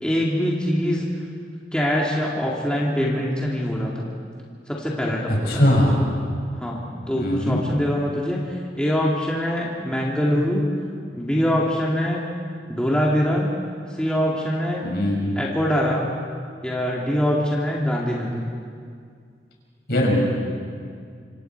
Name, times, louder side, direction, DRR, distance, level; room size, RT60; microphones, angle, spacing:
voice 1, 0.0-1.2 1.7-4.1 4.7-5.7 6.5-10.7 11.1-12.3 12.7-13.5 13.9-14.9 15.4-16.1 16.6-18.5, equal, 5° left, -4 dB, 2.2 m, -23 dB
voice 2, 5.3-6.0 7.1-7.6 14.8-15.3 19.9-20.2, left 1 dB, 60° left, -1 dB, 5.9 m, -20 dB
26.5 x 26.0 x 4.6 m, 2.2 s
head